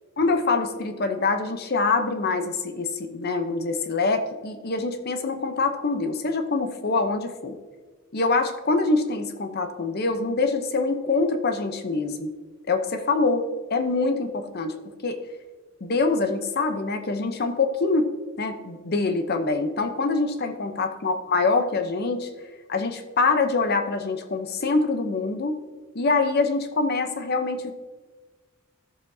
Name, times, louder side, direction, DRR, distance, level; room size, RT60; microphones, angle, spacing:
voice 1, 0.2-7.6 8.1-12.3 12.7-14.8 15.0-15.2 15.8-18.1 18.4-22.3 22.7-25.6 25.9-27.7, left 3 dB, 50° left, 7 dB, 0.8 m, -25 dB
14.5 x 6.8 x 2.7 m, 1.3 s
head